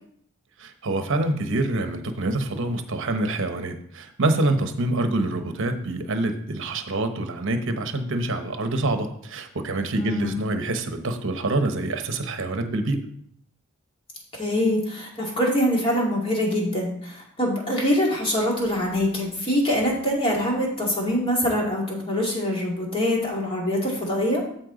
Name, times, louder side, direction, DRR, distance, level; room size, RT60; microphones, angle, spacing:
voice 1, 0.6-13.0, right 2 dB, 60° right, 7 dB, 0.9 m, -26 dB
voice 2, 9.9-10.3 14.4-24.4, equal, 25° left, -3 dB, 2.3 m, -24 dB
13.0 x 4.4 x 4.0 m, 0.66 s
head